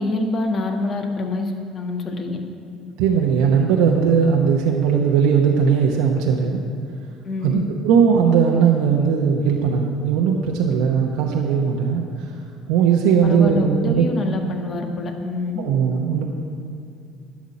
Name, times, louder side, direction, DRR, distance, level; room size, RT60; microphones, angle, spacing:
voice 1, 0.0-2.4 7.2-7.7 13.0-15.7, left 2 dB, 45° left, 4 dB, 1.6 m, -26 dB
voice 2, 3.0-6.6 7.4-12.3 12.7-14.1 15.6-16.2, right 7 dB, 70° right, 0 dB, 0.9 m, -18 dB
11.5 x 6.2 x 8.4 m, 2.4 s
hypercardioid pair, 60°, 0 cm